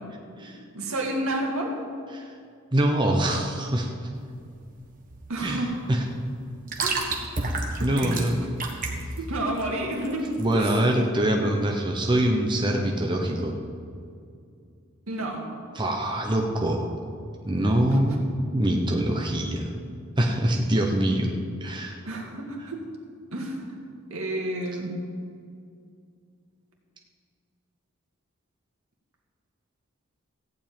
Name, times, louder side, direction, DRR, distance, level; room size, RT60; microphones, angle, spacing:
voice 1, 0.7-1.8 5.3-5.8 6.8-7.2 7.9-8.3 9.2-10.7 15.1-15.5 17.9-18.0 22.1-22.8 23.3-23.6 24.1-25.0, right 1 dB, 80° right, 0 dB, 2.1 m, -30 dB
voice 2, 2.7-3.9 5.4-6.0 7.5-8.5 10.4-13.5 15.7-16.9 17.5-18.2 18.5-19.7 20.2-21.3 21.6-22.0, right 1 dB, 20° right, 1 dB, 0.9 m, -24 dB
sound 1, 4.1-10.9, right 3 dB, 40° right, 1.4 m, -32 dB
14.5 x 5.4 x 8.8 m, 2.3 s
head